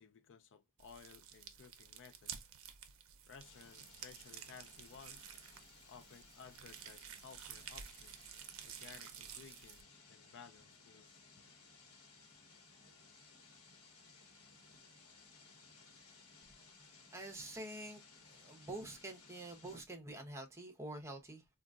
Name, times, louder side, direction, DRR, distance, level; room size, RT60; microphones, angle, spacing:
voice 1, 0.0-2.5 3.3-5.3 5.9-8.2 8.6-11.2, left 6 dB, 55° left, 0.4 m, -58 dB
sound 1, 0.8-9.8, right 9 dB, 60° right, 0.5 m, -52 dB
sound 2, 3.4-19.8, left 4 dB, 80° left, 1.1 m, -61 dB
voice 2, 17.1-18.0 18.3-21.6, right 1 dB, 10° right, 0.7 m, -47 dB
3.7 x 2.3 x 2.4 m
head